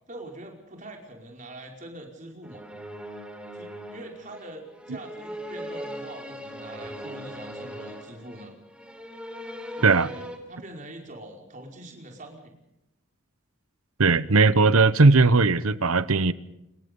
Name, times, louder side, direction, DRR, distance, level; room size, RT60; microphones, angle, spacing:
voice 1, 0.1-2.6 3.5-8.5 9.7-12.5, right 1 dB, 35° right, 5.2 m, -43 dB
sound 1, 2.4-10.4, equal, 5° right, 3.6 m, -39 dB
voice 2, 14.0-16.3, right 3 dB, 80° right, 1.0 m, -18 dB
26.5 x 22.0 x 5.5 m
head